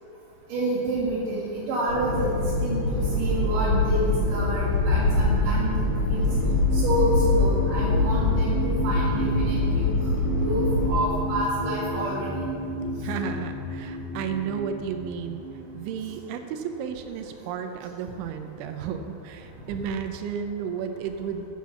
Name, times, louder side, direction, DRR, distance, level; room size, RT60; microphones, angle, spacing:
voice 1, 0.5-6.3 6.7-9.9 10.4-12.4, right 1 dB, 55° right, -9 dB, 2.8 m, -28 dB
sound 1, 1.9-10.9, left 2 dB, 40° left, 1.2 m, -24 dB
sound 2, 6.2-16.3 16.9-17.0, equal, 70° left, 3.4 m, -32 dB
voice 2, 13.0-15.4 15.7-21.4, right 7 dB, 90° right, 6 dB, 3.0 m, -33 dB
9.1 x 7.4 x 7.1 m, 2.7 s
omnidirectional pair, 5.5 m